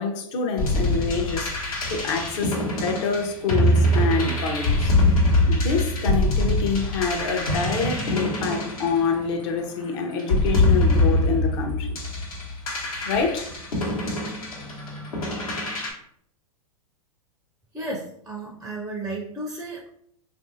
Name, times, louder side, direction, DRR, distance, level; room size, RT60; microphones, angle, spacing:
voice 1, 0.0-5.0 5.5-12.0 13.0-13.5, left 5 dB, 55° left, 0.7 m, -27 dB
sound 1, 0.6-9.6 10.2-15.9, left 1 dB, 80° left, 1.1 m, -23 dB
voice 2, 17.7-19.9, right 2 dB, 5° right, 0.4 m, -33 dB
3.2 x 2.6 x 2.6 m
hypercardioid pair, 110°, 18 cm